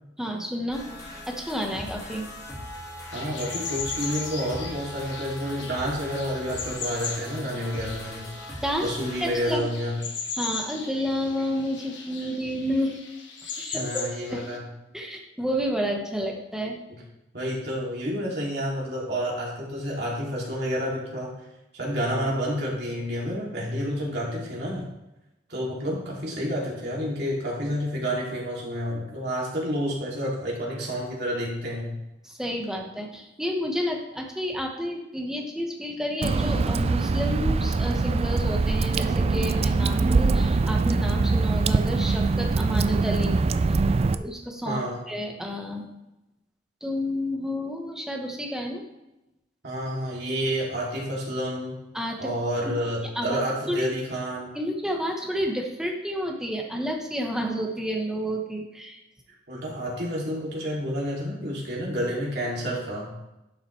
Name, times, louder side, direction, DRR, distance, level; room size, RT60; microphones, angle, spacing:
voice 1, 0.2-2.2 8.6-8.9 9.2-9.7 10.3-13.0 13.4-14.0 14.3-14.4 14.9-16.8 32.2-43.4 44.0-44.8 45.1-45.9 46.8-48.8 51.9-52.3 52.7-52.8 53.1-53.4 53.7-53.9 54.5-59.0, equal, 5° right, 1 dB, 1.2 m, -30 dB
sound 1, 0.7-9.5, equal, 20° left, 2.2 m, -40 dB
sound 2, 3.1-14.6, left 5 dB, 85° left, 1.4 m, -38 dB
voice 2, 3.1-8.3 8.8-10.0 13.7-14.6 16.9-17.0 17.3-21.3 21.7-24.9 25.5-31.9 44.6-45.0 49.6-51.8 52.2-54.5 59.5-63.1, equal, 60° right, -4 dB, 2.8 m, -29 dB
Water / Drip, 36.2-44.2, right 3 dB, 35° right, 0.3 m, -23 dB
11.5 x 6.1 x 3.3 m, 0.93 s
head